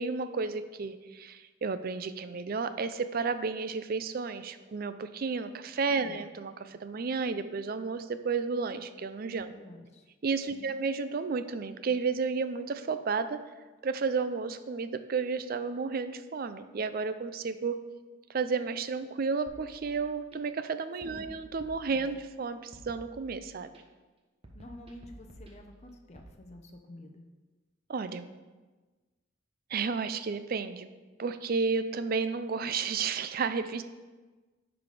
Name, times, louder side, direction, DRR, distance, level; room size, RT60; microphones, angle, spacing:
voice 1, 0.0-9.5 10.2-13.4 13.8-17.7 18.3-23.7 27.9-28.3 29.7-30.9 31.2-33.8, right 4 dB, 45° right, 11 dB, 0.4 m, -32 dB
voice 2, 5.9-6.3 9.5-10.0 10.5-10.9 21.1-21.3 21.9-22.1 24.5-27.3, left 1 dB, 35° left, 3 dB, 0.7 m, -49 dB
sound 1, 19.5-20.4 21.0-22.4 22.7-23.8 24.4-26.3, right 1 dB, 30° right, 0.9 m, -52 dB
10.5 x 4.1 x 4.8 m, 1.3 s
head